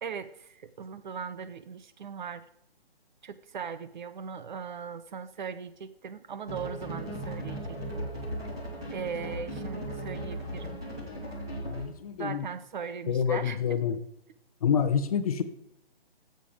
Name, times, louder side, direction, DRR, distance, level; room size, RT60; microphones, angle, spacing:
voice 1, 0.0-2.4 3.2-8.0 8.9-10.8 12.2-13.8, right 6 dB, 50° right, 13 dB, 0.7 m, -39 dB
sound 1, 6.5-12.0, right 1 dB, 5° right, 0.4 m, -37 dB
voice 2, 11.6-12.4 13.1-14.0 14.6-15.4, left 7 dB, 35° left, 10 dB, 0.8 m, -27 dB
12.0 x 7.7 x 5.0 m, 0.78 s
hypercardioid pair, 155°, 31 cm